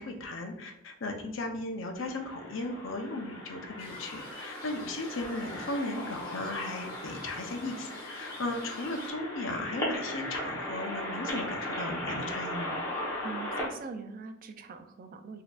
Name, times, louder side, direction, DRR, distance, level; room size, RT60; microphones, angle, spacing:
voice 1, 0.0-12.8, left 2 dB, 70° left, 4 dB, 0.6 m, -36 dB
sound 1, 2.0-13.7, left 1 dB, 15° left, 0.9 m, -38 dB
sound 2, 3.8-9.1, left 2 dB, 50° left, 1.3 m, -50 dB
voice 2, 13.2-15.4, right 4 dB, 45° right, 7 dB, 0.3 m, -42 dB
4.0 x 2.7 x 2.3 m, 0.82 s
head